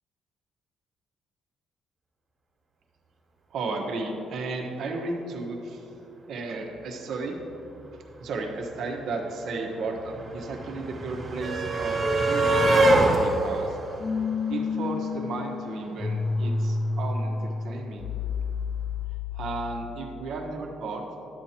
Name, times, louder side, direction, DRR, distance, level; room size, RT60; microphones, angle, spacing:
voice 1, 3.5-5.9 6.3-7.4 8.2-13.8 14.5-18.0 19.3-21.1, right 3 dB, 70° right, 1 dB, 1.1 m, -34 dB
sound 1, 8.6-8.7 8.9-15.1 16.3-16.4 16.7-16.8, right 2 dB, 45° right, 1.6 m, -25 dB
sound 2, 12.0-19.9, left 3 dB, 35° left, 0.6 m, -30 dB
10.5 x 8.0 x 2.9 m, 3.0 s
cardioid pair, 85°, 0 cm